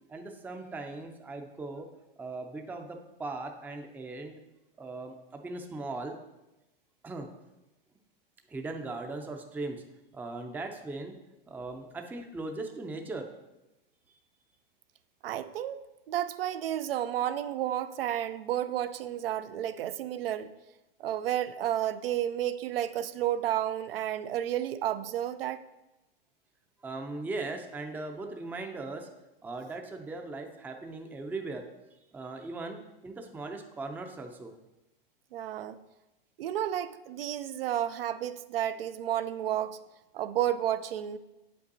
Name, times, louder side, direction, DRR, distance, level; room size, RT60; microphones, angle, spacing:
voice 1, 0.1-1.9 2.2-4.3 4.8-6.1 7.0-7.3 8.5-9.8 10.1-11.1 11.5-13.3 26.8-29.1 29.4-31.6 32.1-34.5, right 3 dB, 5° right, 4 dB, 0.5 m, -39 dB
voice 2, 15.2-15.8 16.1-20.5 21.0-25.6 35.3-35.8 36.4-39.8 40.1-41.2, right 11 dB, 75° right, 12 dB, 0.5 m, -31 dB
7.7 x 5.3 x 2.7 m, 0.98 s
hypercardioid pair, 105°, 29 cm